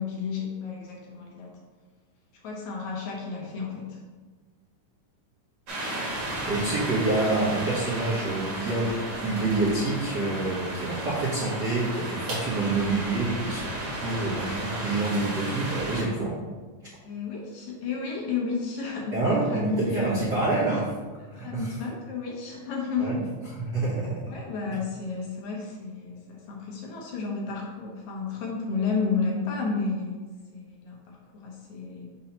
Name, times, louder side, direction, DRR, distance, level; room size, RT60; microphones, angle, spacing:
voice 1, 0.0-1.5 2.4-4.0 17.0-20.3 21.4-23.3 24.3-30.2 30.5-32.1, left 4 dB, 70° left, -2 dB, 2.2 m, -32 dB
sound 1, 5.7-16.0, right 1 dB, 50° right, 1.5 m, -34 dB
voice 2, 6.4-16.3 19.1-20.9 21.3-21.7 23.0-23.2 23.5-24.2, right 2 dB, 75° right, -8 dB, 0.9 m, -27 dB
6.3 x 5.4 x 2.9 m, 1.4 s
omnidirectional pair, 3.7 m